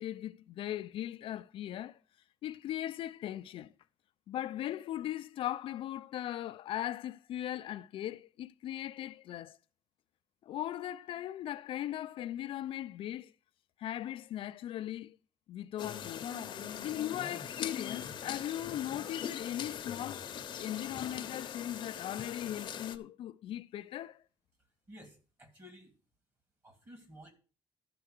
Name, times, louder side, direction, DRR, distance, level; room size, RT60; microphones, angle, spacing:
voice 1, 0.0-2.0 2.4-3.7 4.3-9.6 10.4-13.3 13.8-15.2 15.5-16.3 16.8-20.3 20.6-24.2, left 12 dB, 70° left, 0.5 m, -39 dB
sound 1, 15.8-23.0, left 9 dB, 55° left, 0.9 m, -41 dB
voice 2, 24.6-26.0 26.6-27.3, equal, 25° right, 2.6 m, -54 dB
12.5 x 4.7 x 6.5 m
cardioid pair, 155°, 9 cm